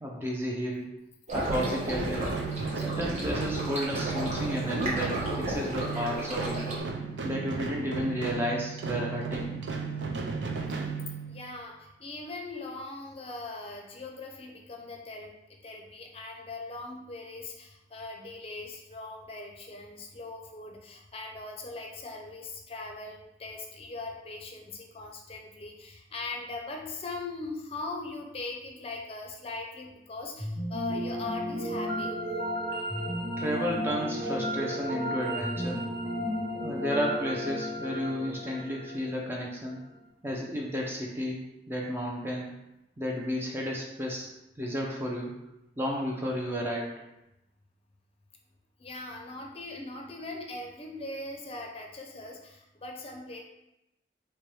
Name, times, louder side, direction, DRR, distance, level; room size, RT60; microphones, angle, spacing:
voice 1, 0.0-0.9 1.3-2.3 2.8-6.7 7.2-9.5 33.4-35.8 36.6-39.8 40.2-42.5 43.0-44.3 44.6-45.3 45.8-46.9, equal, 15° right, -2 dB, 0.4 m, -32 dB
sound 1, 1.3-6.8, right 1 dB, 40° right, 0.9 m, -34 dB
sound 2, 1.4-11.6, right 5 dB, 85° right, 0.4 m, -35 dB
voice 2, 11.3-15.3 15.6-32.2 48.8-53.4, left 2 dB, 35° left, 1 dB, 0.5 m, -40 dB
sound 3, 30.4-39.5, equal, 65° right, 1.0 m, -33 dB
4.2 x 2.2 x 3.2 m, 0.89 s
head